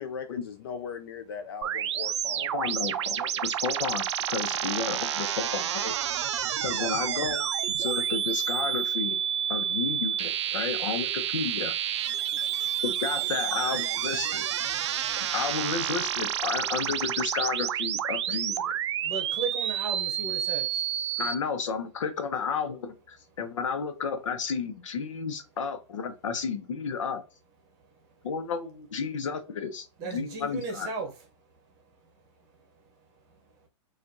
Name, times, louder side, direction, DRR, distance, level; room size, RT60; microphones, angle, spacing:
voice 1, 0.0-2.5, left 6 dB, 50° left, 0.5 m, -38 dB
sound 1, 1.6-21.3, right 10 dB, 65° right, 0.4 m, -29 dB
voice 2, 2.4-6.0 6.6-7.5 7.8-9.2 9.5-11.7 12.8-14.4 15.2-18.7 21.2-27.2 28.2-30.9, left 6 dB, 80° left, 1.0 m, -32 dB
voice 3, 19.0-20.8 30.0-31.1, right 4 dB, 20° right, 0.8 m, -35 dB
4.9 x 2.5 x 2.7 m
supercardioid pair, 175°, 16 cm